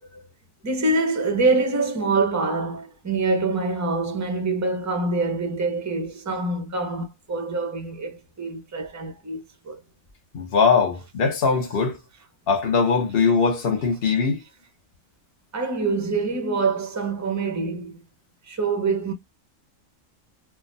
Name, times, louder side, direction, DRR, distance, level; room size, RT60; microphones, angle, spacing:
voice 1, 0.6-9.8 15.5-18.0 18.5-19.1, right 3 dB, 20° right, 0.5 m, -25 dB
voice 2, 10.3-12.0 12.5-14.4, left 5 dB, 50° left, 1.0 m, -21 dB
3.4 x 2.1 x 2.5 m
omnidirectional pair, 1.3 m